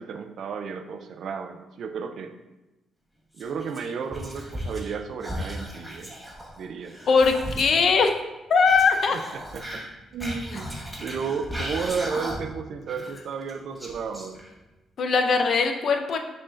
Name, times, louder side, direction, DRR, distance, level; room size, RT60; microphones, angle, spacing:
voice 1, 0.0-2.3 3.3-6.1 6.6-7.0 9.1-9.8 10.1-10.7 11.0-14.4, right 5 dB, 65° right, 7 dB, 0.4 m, -33 dB
Whispering, 3.3-4.9 5.2-7.9 8.6-12.6 12.9-14.7, equal, ahead, 0.9 m, -36 dB
voice 2, 7.1-8.1 8.5-9.2 15.0-16.2, left 5 dB, 60° left, 5 dB, 0.5 m, -20 dB
5.4 x 2.6 x 3.2 m, 1.0 s
cardioid pair, 105°, 0 cm